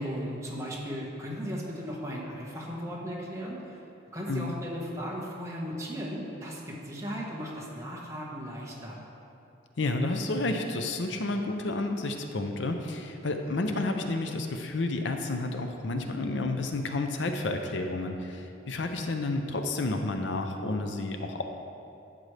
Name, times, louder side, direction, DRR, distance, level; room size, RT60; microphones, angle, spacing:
voice 1, 0.0-3.6 4.1-9.0, equal, 15° right, -4 dB, 1.4 m, -36 dB
voice 2, 9.8-21.4, left 2 dB, 70° left, 5 dB, 0.6 m, -30 dB
12.0 x 7.7 x 3.3 m, 2.7 s
head